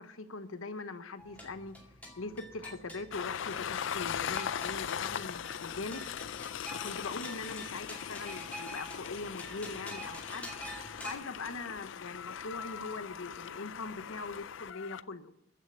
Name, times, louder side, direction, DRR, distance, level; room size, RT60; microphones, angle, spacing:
voice 1, 0.0-1.8 2.2-6.0 6.7-10.5 11.0-15.3, left 3 dB, 90° left, 11 dB, 1.0 m, -41 dB
sound 1, 1.2-11.1, equal, 10° left, 2.2 m, -47 dB
Train, 3.1-15.0, left 8 dB, 70° left, 0.4 m, -39 dB
14.5 x 6.5 x 7.6 m, 0.83 s
head